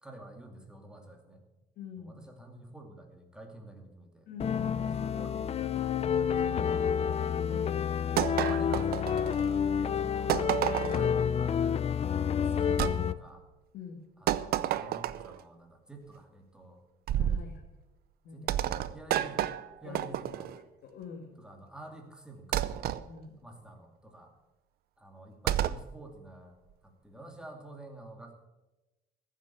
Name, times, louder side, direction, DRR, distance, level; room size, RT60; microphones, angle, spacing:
voice 1, 0.0-1.4 2.0-4.3 5.1-7.0 7.4-7.7 8.4-10.6 10.9-11.6 12.0-13.5 14.2-16.8 17.2-17.4 18.3-19.5 19.8-20.5 21.4-22.7 23.4-24.3 25.0-26.6 26.8-28.3, right 1 dB, 5° right, 3 dB, 2.5 m, -49 dB
voice 2, 1.8-2.2 4.3-5.3 7.5-7.7 13.7-14.0 17.2-17.6 18.2-18.5 19.8-20.1 20.8-21.4 23.1-23.4, left 6 dB, 70° left, 2 dB, 2.0 m, -45 dB
sound 1, 4.4-13.2, left 7 dB, 35° left, 0.5 m, -29 dB
sound 2, 8.2-9.6 10.3-11.1 12.8-13.0 14.3-15.4 17.1-17.5 18.5-20.6 22.5-23.0 25.5-25.9, right 12 dB, 65° right, 0.6 m, -30 dB
14.5 x 7.4 x 8.5 m, 1.0 s
cardioid pair, 110°, 17 cm